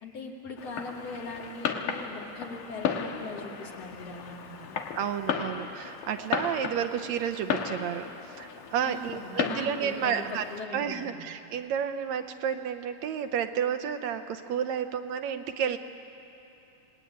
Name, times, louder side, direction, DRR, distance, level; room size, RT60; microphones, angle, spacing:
voice 1, 0.0-4.8 8.8-11.3, left 3 dB, 55° left, -1 dB, 3.6 m, -40 dB
Fireworks, 0.6-10.6, left 7 dB, 85° left, 2.8 m, -35 dB
voice 2, 5.0-8.1 8.4-10.5 10.7-15.8, right 8 dB, 75° right, 8 dB, 1.9 m, -31 dB
28.5 x 19.5 x 9.3 m, 3.0 s
omnidirectional pair, 3.5 m